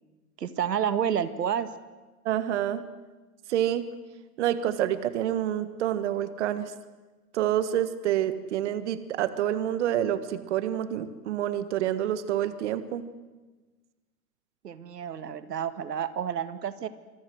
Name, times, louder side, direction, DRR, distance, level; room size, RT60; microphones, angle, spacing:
voice 1, 0.4-1.7 14.6-16.9, right 8 dB, 90° right, 12 dB, 1.9 m, -29 dB
voice 2, 2.2-2.8 3.5-3.8 4.4-6.7 7.3-13.0, right 11 dB, 45° right, 13 dB, 1.6 m, -28 dB
26.0 x 22.0 x 7.9 m, 1.2 s
hypercardioid pair, 155°, 47 cm